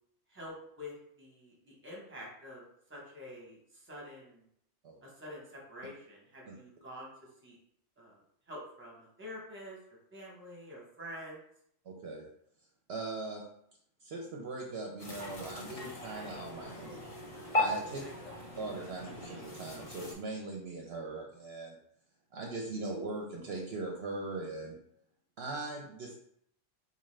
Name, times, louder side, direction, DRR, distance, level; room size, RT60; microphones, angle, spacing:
voice 1, 0.3-2.6 2.9-4.4 5.0-7.1 7.4-7.6 8.0-8.2 8.5-9.8 10.1-11.5 17.8-18.1, left 1 dB, 10° right, -3 dB, 0.8 m, -47 dB
voice 2, 11.9-12.2 12.9-13.4 14.0-17.0 17.5-18.0 18.6-21.8 22.3-24.7 25.4-26.2, right 2 dB, 65° right, 0 dB, 0.8 m, -40 dB
sound 1, 15.0-20.1, left 2 dB, 35° left, 0.6 m, -37 dB
4.1 x 2.4 x 3.2 m, 0.70 s
omnidirectional pair, 1.3 m